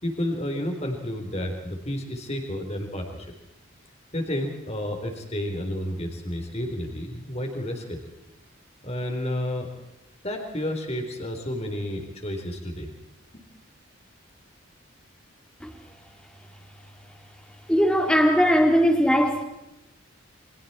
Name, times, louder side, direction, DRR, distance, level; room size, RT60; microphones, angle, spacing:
voice 1, 0.0-3.3 4.1-8.0 8.8-9.7 10.2-12.9 13.3-13.4, left 1 dB, 30° left, 3 dB, 4.0 m, -31 dB
voice 2, 17.7-19.4, equal, 5° left, 3 dB, 2.7 m, -19 dB
29.5 x 26.0 x 4.4 m, 0.90 s
head